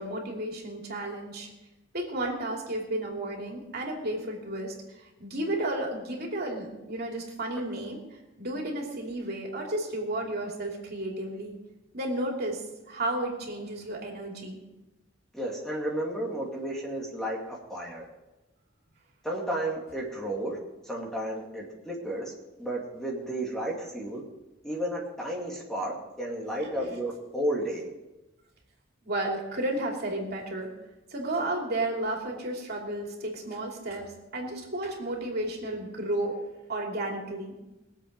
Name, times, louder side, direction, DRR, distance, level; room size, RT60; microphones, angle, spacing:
voice 1, 0.0-1.5 1.9-4.7 5.0-11.5 11.9-14.6 26.6-26.9 29.0-30.7 31.1-34.1 34.3-36.4 36.7-37.5, right 1 dB, 55° right, 0 dB, 2.9 m, -32 dB
voice 2, 15.3-18.1 19.2-20.6 20.8-22.3 22.6-24.2 24.6-27.9, right 1 dB, 5° left, -2 dB, 2.3 m, -32 dB
21.5 x 7.9 x 5.3 m, 1.0 s
head